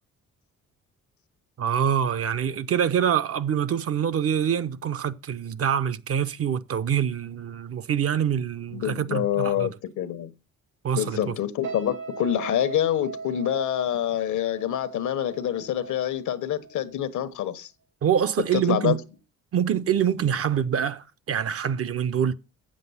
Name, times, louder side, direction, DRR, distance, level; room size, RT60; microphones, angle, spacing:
voice 1, 1.6-9.7 10.8-11.4 18.0-19.0 19.5-22.3, right 8 dB, 50° right, 0.7 m, -25 dB
voice 2, 8.7-10.3 10.9-17.7 18.5-19.0, left 11 dB, 75° left, 1.1 m, -26 dB
sound 1, 11.6-16.9 17.2-17.5, right 4 dB, 75° right, 4.5 m, -38 dB
7.6 x 7.6 x 5.5 m
cardioid pair, 90°, 30 cm